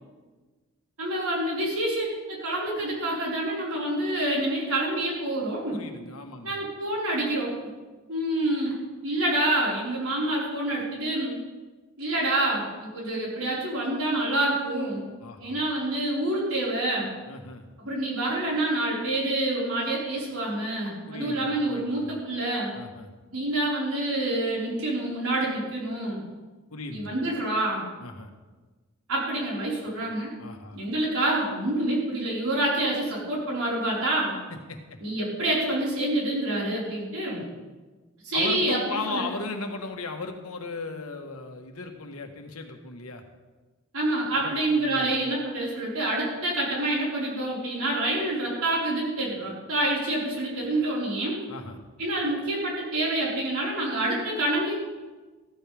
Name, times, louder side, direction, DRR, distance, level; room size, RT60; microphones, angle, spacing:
voice 1, 1.0-5.8 6.4-7.5 8.1-8.8 9.0-11.4 12.0-15.0 15.4-17.1 17.8-22.7 23.3-26.2 26.9-27.8 29.1-30.3 30.7-34.3 35.0-37.5 38.2-39.2 43.9-51.4 52.0-54.8, right 1 dB, 85° right, -5 dB, 4.9 m, -27 dB
voice 2, 5.7-6.6 15.2-15.6 17.3-17.6 21.1-22.1 22.7-23.1 26.7-27.2 28.0-28.3 30.4-30.8 34.7-34.8 38.3-43.2 44.3-45.3 51.5-51.8, left 3 dB, 85° left, 4 dB, 1.5 m, -36 dB
14.5 x 13.5 x 3.5 m, 1.3 s
head